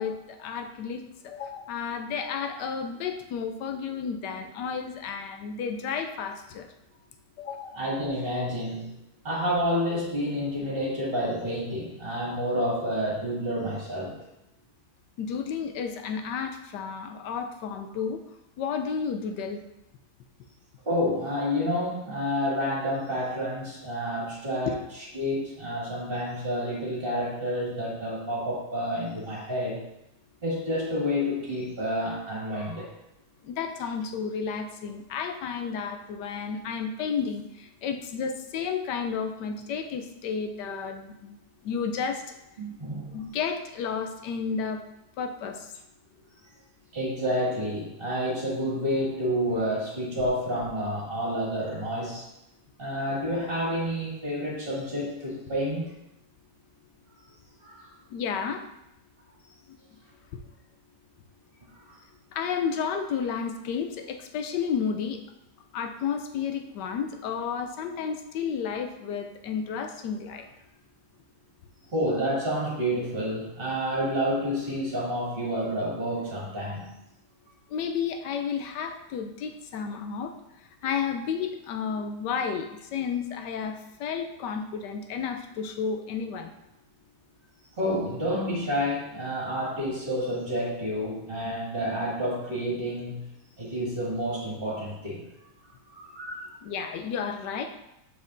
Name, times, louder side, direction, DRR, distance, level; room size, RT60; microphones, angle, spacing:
voice 1, 0.0-6.7 7.4-7.8 15.2-18.2 18.6-19.6 24.7-24.8 33.4-41.4 41.6-42.2 43.1-44.8 45.2-45.7 58.1-58.6 60.3-60.4 62.3-65.2 65.7-70.5 77.7-80.3 80.8-86.5 96.6-97.6, left 6 dB, 80° left, 6 dB, 1.2 m, -32 dB
voice 2, 7.7-8.9 9.2-14.2 20.9-24.8 25.1-29.8 30.4-32.9 42.6-43.1 46.9-52.2 52.8-55.8 57.6-57.9 61.7-62.0 71.9-76.9 87.8-93.2 93.6-95.2 95.9-96.6, equal, 30° right, -6 dB, 2.3 m, -29 dB
7.2 x 6.4 x 2.6 m, 0.86 s
omnidirectional pair, 1.8 m